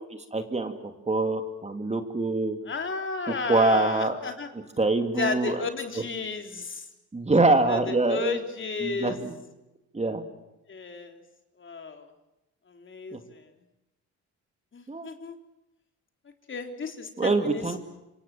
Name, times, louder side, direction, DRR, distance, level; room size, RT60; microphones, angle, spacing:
voice 1, 0.0-2.6 3.5-4.2 4.8-5.7 7.1-8.4 8.8-9.3 9.9-10.2 13.1-13.2 14.9-15.1 17.2-17.8, right 2 dB, 20° right, 7 dB, 2.8 m, -25 dB
voice 2, 2.7-4.5 5.2-6.9 7.7-9.2 10.7-11.2 11.6-12.1 12.7-13.5 14.7-15.4 16.5-17.8, left 4 dB, 40° left, 5 dB, 3.8 m, -33 dB
26.5 x 25.0 x 7.7 m, 0.94 s
cardioid pair, 90°, 30 cm